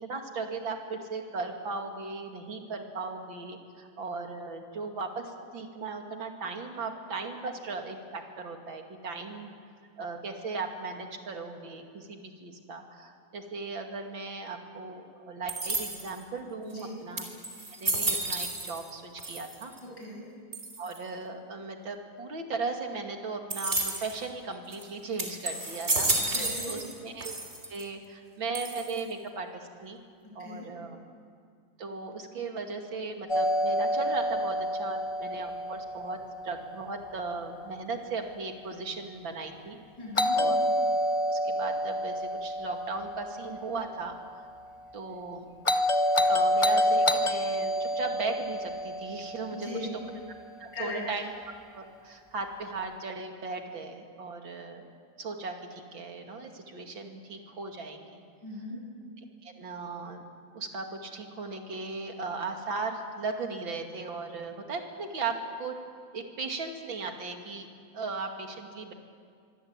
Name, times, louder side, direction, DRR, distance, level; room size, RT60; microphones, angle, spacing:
voice 1, 0.0-9.5 10.0-17.3 17.8-19.7 20.8-26.3 26.6-27.4 27.7-30.0 30.3-31.0 31.8-36.2 36.4-39.8 40.3-40.6 41.3-44.2 44.9-45.5 46.3-49.9 50.6-51.2 51.7-54.9 55.2-58.2 59.4-60.2 60.5-65.8 66.1-67.7 67.9-68.9, right 3 dB, 85° right, 4 dB, 3.2 m, -37 dB
sound 1, 15.5-16.2 16.8-16.9 17.2-18.9 19.2-19.8 20.5-21.0 23.5-24.2 24.7-24.8 25.2-26.9 27.2-27.8 28.5-29.1, right 2 dB, 35° right, 3.7 m, -31 dB
voice 2, 16.7-17.0 19.8-20.2 26.3-26.7 30.4-30.7 40.0-40.4 49.5-49.9 50.7-51.0 58.4-58.8, left 1 dB, 70° left, -2 dB, 8.7 m, -38 dB
Doorbell, 33.3-37.3 40.2-44.4 45.6-50.1, left 1 dB, 45° left, 0.4 m, -28 dB
25.0 x 23.0 x 9.0 m, 2.2 s
omnidirectional pair, 2.0 m